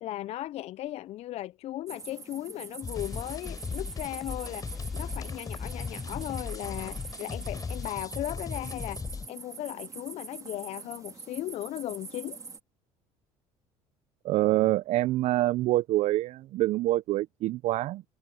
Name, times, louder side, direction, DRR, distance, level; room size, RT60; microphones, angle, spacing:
voice 1, 0.0-9.0 9.3-12.4, left 14 dB, 55° left, 0.4 m, -37 dB
sound 1, 1.9-12.6, right 4 dB, 25° right, 2.5 m, -44 dB
sound 2, 2.8-9.3, left 5 dB, 30° left, 4.0 m, -37 dB
sound 3, 2.9-7.9, equal, ahead, 4.8 m, -58 dB
voice 2, 14.2-18.0, right 16 dB, 60° right, 0.4 m, -26 dB
supercardioid pair, 80°, 13 cm